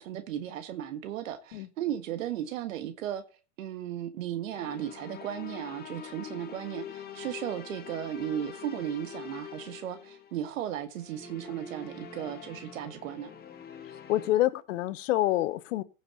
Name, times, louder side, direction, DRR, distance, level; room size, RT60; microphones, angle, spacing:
voice 1, 0.0-3.2 3.6-13.3, right 11 dB, 65° right, 1.6 m, -35 dB
sound 1, 4.5-14.3, left 7 dB, 20° left, 1.9 m, -44 dB
voice 2, 14.1-15.8, left 15 dB, 60° left, 1.2 m, -27 dB
15.5 x 6.9 x 4.3 m
hypercardioid pair, 120°, 42 cm